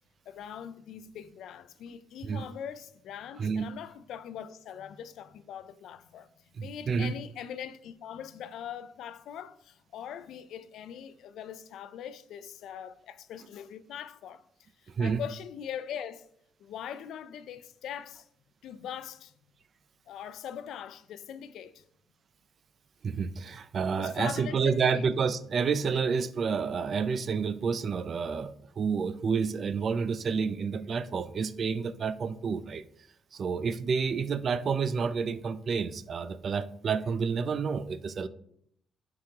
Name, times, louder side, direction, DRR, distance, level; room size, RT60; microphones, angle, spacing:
voice 1, 0.3-6.3 6.6-16.3 16.6-18.3 18.6-19.3 20.1-21.8 24.0-25.0, left 9 dB, 80° left, 0.4 m, -42 dB
voice 2, 6.6-7.1 15.0-15.2 23.0-32.8 33.3-38.3, right 5 dB, 50° right, 0.4 m, -29 dB
9.5 x 4.8 x 2.9 m
cardioid pair, 90°, 0 cm